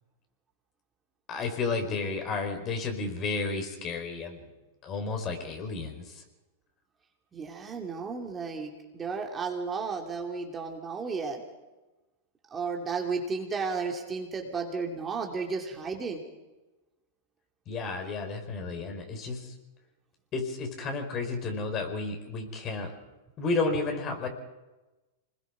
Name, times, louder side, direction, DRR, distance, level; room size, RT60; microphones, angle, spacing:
voice 1, 1.3-4.5 4.8-6.2 17.7-19.6 20.3-23.0 23.4-24.3, left 3 dB, 35° left, 4 dB, 4.8 m, -32 dB
voice 2, 7.3-11.4 12.5-16.2, right 4 dB, 20° right, 1 dB, 2.8 m, -33 dB
25.5 x 21.0 x 4.8 m, 1.1 s
hypercardioid pair, 110°, 0 cm